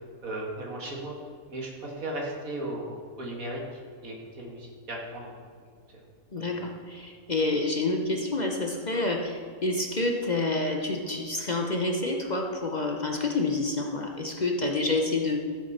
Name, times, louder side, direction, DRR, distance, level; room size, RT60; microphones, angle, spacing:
voice 1, 0.2-1.1 1.5-5.4 6.4-6.6, right 1 dB, 80° right, -1 dB, 2.5 m, -36 dB
voice 2, 6.3-15.4, left 2 dB, 35° left, 2 dB, 0.9 m, -28 dB
14.0 x 8.1 x 4.3 m, 2.1 s
omnidirectional pair, 1.4 m